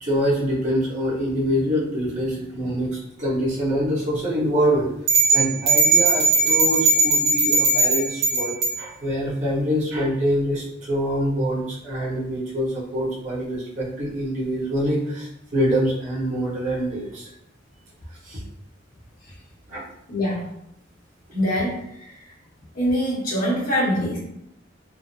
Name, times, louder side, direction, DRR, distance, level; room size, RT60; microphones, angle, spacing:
voice 1, 0.0-4.9 5.3-17.3 18.2-18.4 19.7-19.8, equal, 40° right, -8 dB, 0.9 m, -25 dB
sound 1, 5.1-8.8, right 3 dB, 80° right, 1.3 m, -18 dB
voice 2, 20.1-20.5 21.3-22.2 22.7-24.2, equal, 50° left, -7 dB, 1.3 m, -24 dB
3.2 x 2.0 x 2.6 m, 0.77 s
head